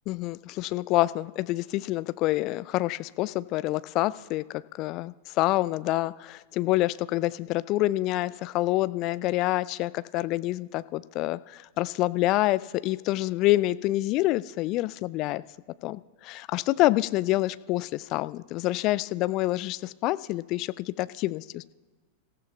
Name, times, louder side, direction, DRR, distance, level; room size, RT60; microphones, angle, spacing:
voice 1, 0.1-4.4 4.7-15.4 15.8-21.7, left 17 dB, 40° left, 17 dB, 0.3 m, -27 dB
26.5 x 15.0 x 2.3 m, 1.4 s
figure-of-eight pair, 90°, 0 cm